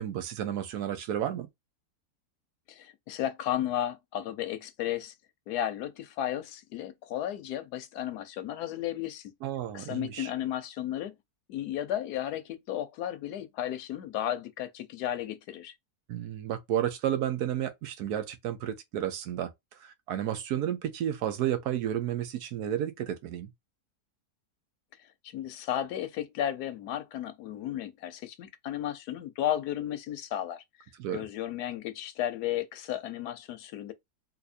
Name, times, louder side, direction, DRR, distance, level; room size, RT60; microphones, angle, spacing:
voice 1, 0.0-1.5 9.4-10.3 16.1-23.5 31.0-31.3, right 10 dB, 80° right, 1.2 m, -32 dB
voice 2, 2.7-5.1 5.5-9.3 9.7-11.1 11.5-15.7 25.3-30.6 31.1-33.9, left 11 dB, 90° left, 1.2 m, -34 dB
4.1 x 2.7 x 2.6 m
omnidirectional pair, 1.6 m